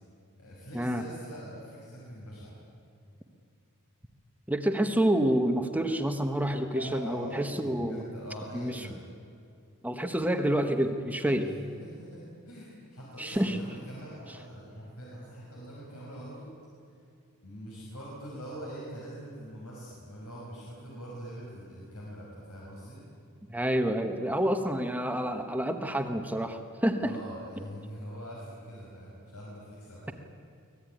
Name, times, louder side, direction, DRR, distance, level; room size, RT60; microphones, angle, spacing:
voice 1, 0.4-2.5 6.7-9.0 11.4-16.5 17.4-23.0 27.0-30.1, equal, 80° left, -5 dB, 5.9 m, -43 dB
voice 2, 4.5-8.0 8.5-9.0 9.8-11.5 13.2-13.6 23.5-27.1, right 1 dB, 5° right, 6 dB, 1.2 m, -28 dB
24.5 x 18.5 x 9.3 m, 2.4 s
head